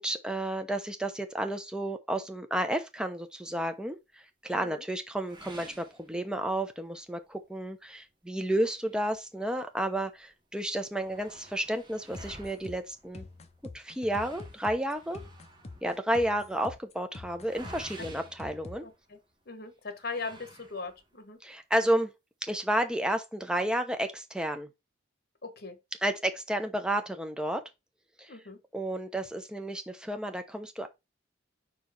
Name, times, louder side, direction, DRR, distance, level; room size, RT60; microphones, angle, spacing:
voice 1, 0.0-4.0 4.4-13.2 13.7-15.2 15.8-18.8 21.4-22.1 22.5-24.7 26.0-27.6 28.2-28.3 28.7-30.9, right 1 dB, 5° right, 0.8 m, -31 dB
voice 2, 4.5-4.9 18.0-18.1 18.8-19.2 19.5-21.4 25.4-25.8 28.3-28.6, left 4 dB, 55° left, 1.3 m, -40 dB
sound 1, 5.3-6.7 7.2-7.3 7.7-7.8 8.6-9.9 10.3-10.4 10.6-19.3 20.0-21.2, right 2 dB, 25° right, 1.6 m, -52 dB
sound 2, 12.1-18.8, left 2 dB, 35° left, 0.7 m, -46 dB
4.7 x 4.3 x 5.3 m
head